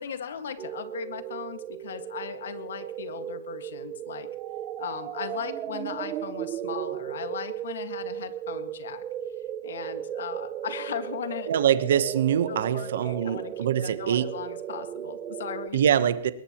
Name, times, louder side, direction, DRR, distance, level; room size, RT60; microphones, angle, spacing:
voice 1, 0.0-4.3 4.8-9.0 9.6-11.5 12.5-13.5 13.8-15.8, left 7 dB, 80° left, 1.8 m, -37 dB
sound 1, 0.6-15.7, right 11 dB, 20° right, 0.6 m, -36 dB
voice 2, 11.5-14.3 15.7-16.3, right 9 dB, 70° right, 1.0 m, -24 dB
21.5 x 18.5 x 3.1 m
hypercardioid pair, 165°, 0 cm